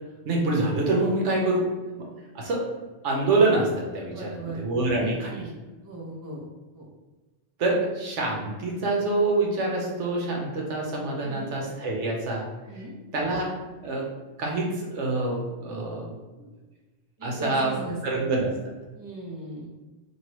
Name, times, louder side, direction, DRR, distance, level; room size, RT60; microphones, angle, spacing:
voice 1, 0.2-1.7 2.0-2.1 2.3-2.7 3.0-5.4 7.6-12.5 13.1-13.5 13.8-14.1 14.4-16.1 17.2-18.5, right 2 dB, 75° right, -1 dB, 1.1 m, -26 dB
voice 2, 4.1-4.6 4.9-5.5 5.8-6.4 6.7-6.9 11.2-11.5 12.7-12.9 17.2-18.2 19.0-19.7, right 2 dB, 20° right, -4 dB, 0.6 m, -37 dB
3.1 x 2.7 x 3.0 m, 1.2 s
omnidirectional pair, 1.2 m